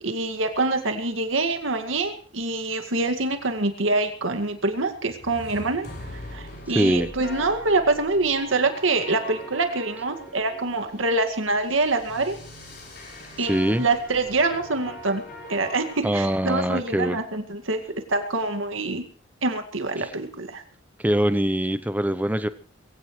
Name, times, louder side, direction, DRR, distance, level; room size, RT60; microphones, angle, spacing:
voice 1, 0.0-5.9 6.1-12.4 13.4-15.2 15.5-17.8 18.1-19.0 19.4-20.6, right 3 dB, 80° right, 6 dB, 2.1 m, -25 dB
sound 1, 4.9-16.0, left 1 dB, 50° left, 6.2 m, -42 dB
voice 2, 6.7-7.1 13.5-13.9 16.0-17.2 20.0-20.1 21.0-22.5, right 1 dB, 10° right, 12 dB, 0.7 m, -23 dB
22.5 x 16.5 x 3.2 m, 0.42 s
head